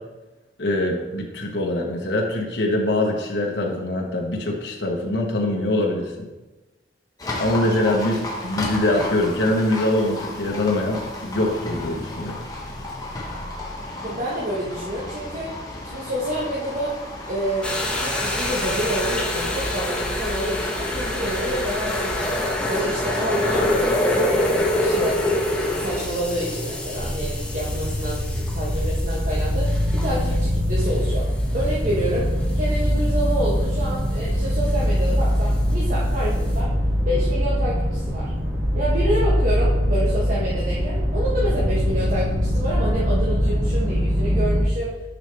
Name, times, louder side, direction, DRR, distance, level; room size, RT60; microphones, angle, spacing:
voice 1, 0.6-6.3 7.4-12.4, left 1 dB, 80° left, 0 dB, 1.1 m, -23 dB
Livestock farm animals working animals, 7.2-22.5, left 1 dB, 20° left, 1.3 m, -34 dB
voice 2, 14.0-15.5 15.8-17.0 17.3-22.4 22.7-25.2 25.5-31.3 31.5-32.3 32.5-36.7 37.0-38.3 38.7-45.0, right 1 dB, 50° right, -6 dB, 1.3 m, -28 dB
sound 1, 17.6-36.6, left 1 dB, 5° left, 1.1 m, -27 dB
sound 2, 26.9-44.6, equal, 70° right, 2.0 m, -22 dB
9.8 x 5.3 x 3.4 m, 1.1 s
head